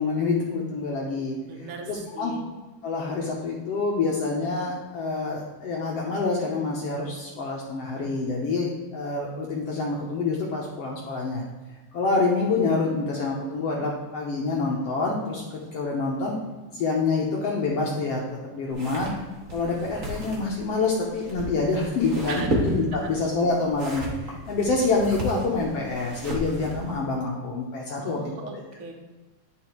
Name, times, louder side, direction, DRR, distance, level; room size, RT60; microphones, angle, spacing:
voice 1, 0.0-1.4 1.6-2.3 2.8-11.4 11.9-15.4 15.7-16.4 16.7-18.2 18.5-19.1 19.5-28.5, left 3 dB, 65° left, -3 dB, 1.8 m, -27 dB
voice 2, 1.5-1.9 2.1-2.4 22.3-22.5 23.0-23.1 27.9-28.9, right 3 dB, 60° right, 2 dB, 1.5 m, -38 dB
sound 1, 18.7-26.9, right 1 dB, 40° right, 1.1 m, -34 dB
10.5 x 4.8 x 4.5 m, 1.3 s
omnidirectional pair, 3.6 m